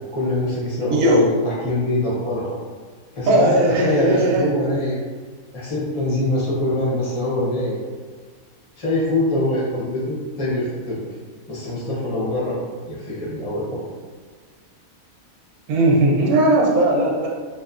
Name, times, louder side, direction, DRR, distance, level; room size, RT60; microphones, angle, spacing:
voice 1, 0.1-2.6 3.1-5.0 5.5-7.8 8.8-11.0 11.5-12.6 12.9-13.8, left 1 dB, 35° left, -7 dB, 0.5 m, -24 dB
voice 2, 0.9-1.2 3.3-4.5 15.7-17.3, right 1 dB, 90° right, -2 dB, 1.1 m, -17 dB
2.8 x 2.3 x 2.4 m, 1.5 s
omnidirectional pair, 1.5 m